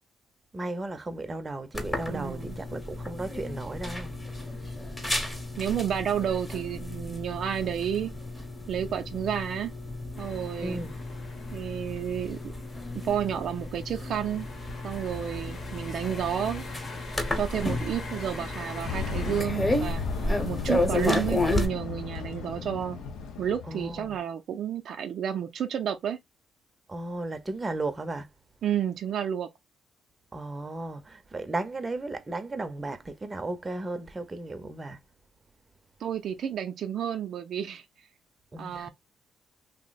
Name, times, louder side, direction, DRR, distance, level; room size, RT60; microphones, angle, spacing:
voice 1, 0.5-4.1 10.6-11.0 23.7-24.2 26.9-28.3 30.3-35.0 38.5-38.9, right 2 dB, 25° right, 0.6 m, -35 dB
sound 1, 1.7-21.7, left 1 dB, 15° left, 1.0 m, -32 dB
voice 2, 2.1-2.6 5.6-8.1 8.7-9.7 10.2-10.8 11.5-12.4 12.9-14.5 14.8-16.6 17.4-20.0 20.4-23.0 23.4-26.2 28.6-29.5 36.0-37.8 38.6-38.9, right 9 dB, 65° right, 0.4 m, -31 dB
sound 2, 10.2-19.4, left 3 dB, 55° left, 0.9 m, -44 dB
sound 3, 18.8-24.2, left 5 dB, 85° left, 0.7 m, -35 dB
2.7 x 2.0 x 3.9 m
cardioid pair, 90°, 0 cm